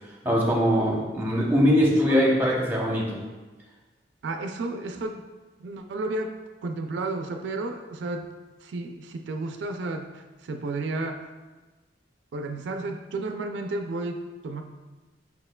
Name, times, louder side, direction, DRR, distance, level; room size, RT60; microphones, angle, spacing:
voice 1, 0.2-3.2, equal, 10° right, -2 dB, 0.7 m, -22 dB
voice 2, 1.9-2.2 4.2-5.2 5.6-6.3 6.6-8.3 8.6-11.3 12.3-14.6, right 2 dB, 75° right, 5 dB, 0.3 m, -32 dB
5.4 x 4.3 x 2.2 m, 1.3 s
head